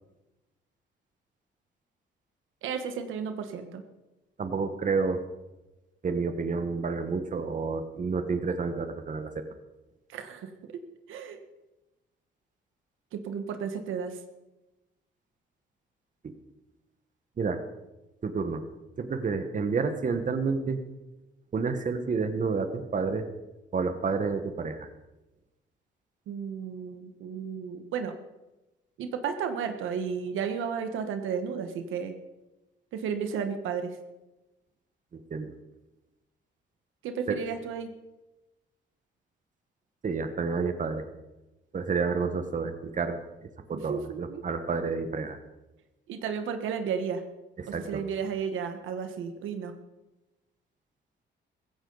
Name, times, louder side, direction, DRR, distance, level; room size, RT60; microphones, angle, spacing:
voice 1, 2.6-3.8 10.1-10.8 11.1-11.4 13.1-14.2 26.3-28.1 29.0-32.1 32.9-34.0 37.0-37.9 43.7-44.6 46.1-47.2 47.7-49.7, right 6 dB, 85° right, 7 dB, 1.4 m, -33 dB
voice 2, 4.4-5.2 6.0-9.3 16.2-16.3 17.4-17.6 18.2-18.6 19.0-20.8 21.5-23.2 23.7-24.9 35.1-35.5 37.3-37.4 40.0-41.0 41.7-45.4 47.6-48.0, right 4 dB, 40° right, 8 dB, 1.4 m, -30 dB
15.5 x 15.5 x 4.1 m, 1.0 s
cardioid pair, 90°, 20 cm